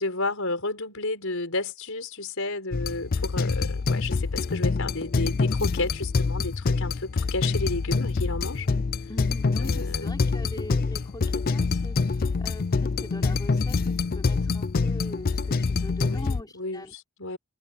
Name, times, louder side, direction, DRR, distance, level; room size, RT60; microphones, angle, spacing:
voice 1, 0.0-8.7 9.6-10.2 16.0-17.4, left 2 dB, 65° left, 5.4 m, -32 dB
sound 1, 2.7-16.4, left 4 dB, 45° left, 0.4 m, -26 dB
voice 2, 9.1-16.9, left 1 dB, 20° left, 3.9 m, -42 dB
head